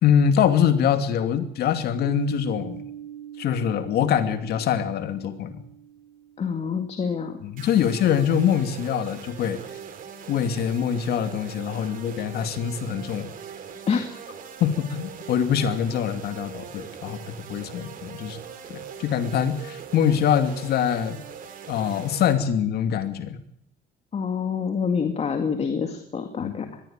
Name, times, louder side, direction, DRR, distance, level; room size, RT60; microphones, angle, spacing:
voice 1, 0.0-2.8 3.4-5.6 7.4-9.6 10.3-13.3 14.6-17.2 17.5-18.4 18.7-21.2 21.7-23.4 26.4-26.5, left 8 dB, 70° left, 9 dB, 2.5 m, -24 dB
Piano, 2.0-7.4, right 10 dB, 85° right, 7.0 m, -42 dB
voice 2, 6.4-7.4 11.8-12.0 13.9-14.1 24.1-26.7, left 6 dB, 40° left, 6 dB, 2.3 m, -27 dB
sound 1, 7.6-22.3, right 7 dB, 55° right, 3.7 m, -41 dB
21.0 x 14.5 x 8.9 m, 0.72 s
cardioid pair, 110°, 17 cm